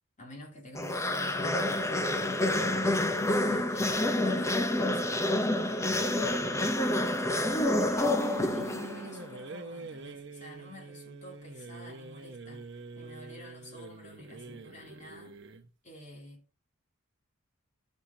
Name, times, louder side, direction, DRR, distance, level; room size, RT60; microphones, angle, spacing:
voice 1, 0.2-2.8 3.3-6.8 7.5-15.4 15.8-16.6, left 1 dB, 35° left, 2.9 m, -48 dB
sound 1, 0.7-9.2, left 1 dB, 15° left, 0.8 m, -28 dB
sound 2, 8.0-15.7, right 3 dB, 60° right, 0.9 m, -45 dB
14.5 x 6.6 x 2.8 m
head